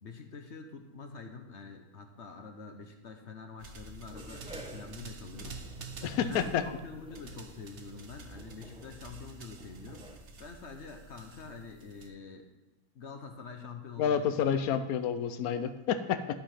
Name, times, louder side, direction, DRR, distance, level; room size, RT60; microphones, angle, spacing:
voice 1, 0.0-5.6 6.0-10.0 10.4-12.5 12.9-14.9, left 4 dB, 55° left, 5 dB, 1.1 m, -46 dB
sound 1, 3.6-12.1, right 4 dB, 55° right, 1.1 m, -48 dB
sound 2, 4.1-10.2, right 1 dB, 5° right, 1.0 m, -52 dB
voice 2, 6.0-6.6 14.0-16.4, left 8 dB, 75° left, 10 dB, 1.2 m, -29 dB
12.5 x 5.1 x 5.7 m, 1.2 s
omnidirectional pair, 1.6 m